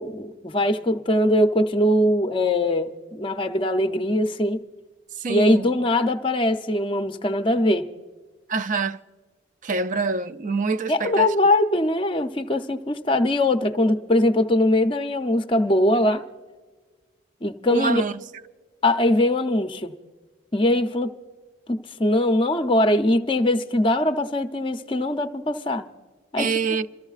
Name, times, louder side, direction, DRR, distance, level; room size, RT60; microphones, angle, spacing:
voice 1, 0.0-4.6 5.3-7.9 10.9-16.2 17.4-18.0 18.8-19.9 20.5-21.1 21.7-25.8 26.3-26.5, left 1 dB, 25° left, 0.6 m, -21 dB
voice 2, 5.1-5.7 8.5-9.0 9.6-11.3 17.7-18.2 26.4-26.9, right 4 dB, 40° right, 0.4 m, -25 dB
28.0 x 14.0 x 2.4 m
head